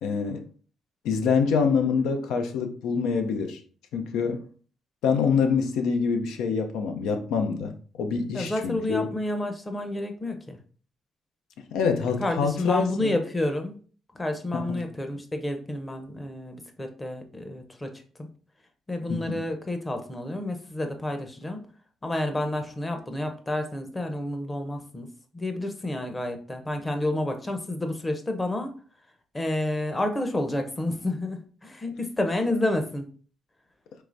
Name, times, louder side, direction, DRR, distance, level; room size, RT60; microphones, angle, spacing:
voice 1, 0.0-0.5 1.0-3.6 3.9-4.4 5.0-9.1 11.7-13.2 14.5-14.8 19.1-19.4, left 5 dB, 90° left, 0.6 m, -26 dB
voice 2, 8.3-10.6 12.2-13.8 14.1-17.9 18.2-18.3 18.9-21.6 22.0-25.1 25.3-28.7 29.3-33.1, left 1 dB, 20° left, 0.8 m, -29 dB
4.7 x 3.3 x 2.6 m
cardioid pair, 90°, 0 cm